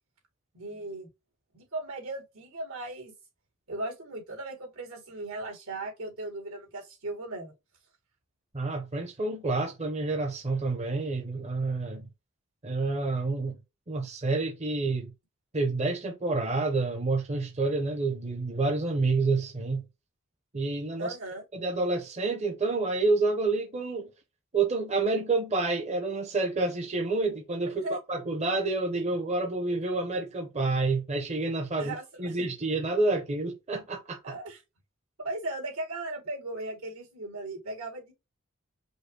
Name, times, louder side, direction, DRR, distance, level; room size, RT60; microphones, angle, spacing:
voice 1, 0.5-1.1 1.5-3.1 3.7-7.5 21.0-21.4 27.8-28.0 31.8-32.4 34.2-34.6 35.2-38.1, right 2 dB, 80° right, 2.4 m, -37 dB
voice 2, 8.5-12.1 12.6-13.6 13.9-15.1 15.5-19.8 20.5-21.1 21.5-24.1 24.5-34.3, right 3 dB, 30° right, 0.7 m, -28 dB
5.3 x 2.1 x 4.6 m
head